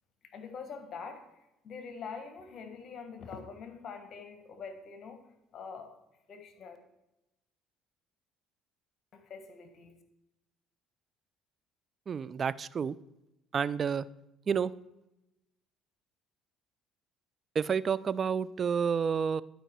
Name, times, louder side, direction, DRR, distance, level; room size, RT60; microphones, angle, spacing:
voice 1, 0.2-1.3 1.6-6.0 6.3-6.8 9.1-10.0, left 5 dB, 50° left, 7 dB, 1.4 m, -44 dB
voice 2, 12.1-13.0 13.5-14.1 14.5-14.7 17.6-19.4, right 6 dB, 40° right, 17 dB, 0.4 m, -29 dB
11.0 x 5.1 x 4.5 m, 0.91 s
hypercardioid pair, 65°, 0 cm